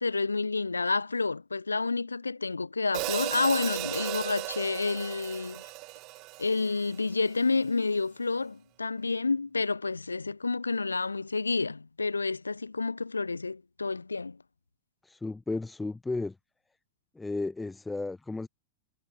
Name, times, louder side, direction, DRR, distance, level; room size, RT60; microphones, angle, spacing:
voice 1, 0.0-5.7 6.4-14.4, left 3 dB, 80° left, 0.6 m, -29 dB
Hi-hat, 2.9-7.2, right 23 dB, 40° right, 0.6 m, -36 dB
voice 2, 15.0-16.4 17.1-18.5, left 3 dB, 10° left, 0.7 m, -34 dB
figure-of-eight pair, 90°, 0 cm